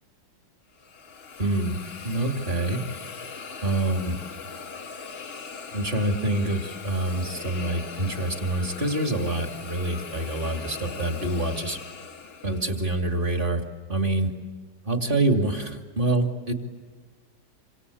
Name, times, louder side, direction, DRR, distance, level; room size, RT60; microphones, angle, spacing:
Hiss, 0.8-12.9, left 5 dB, 40° left, 1.3 m, -40 dB
voice 1, 1.4-1.8 2.0-2.8 3.6-4.1 5.7-11.8 12.4-13.6 13.9-14.3 14.8-16.5, right 2 dB, 30° right, 4 dB, 2.6 m, -26 dB
27.0 x 26.0 x 8.4 m, 1.5 s
omnidirectional pair, 1.9 m